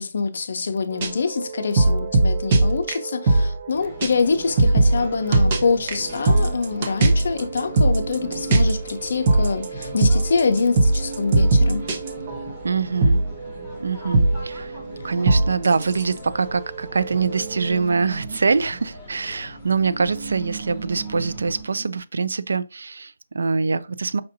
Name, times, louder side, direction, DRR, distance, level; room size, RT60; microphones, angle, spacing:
voice 1, 0.0-11.8, left 4 dB, 55° left, 0.6 m, -25 dB
sound 1, 0.9-4.1 4.4-12.7 13.0-17.8, right 2 dB, 25° right, 0.6 m, -21 dB
sound 2, 3.7-21.6, left 1 dB, 5° left, 1.0 m, -41 dB
sound 3, 5.9-16.6 16.8-22.0, right 4 dB, 60° right, 1.3 m, -40 dB
voice 2, 12.6-13.2 13.8-14.7 15.0-24.2, right 4 dB, 85° right, 0.3 m, -24 dB
5.2 x 2.6 x 2.6 m
hypercardioid pair, 175°, 0 cm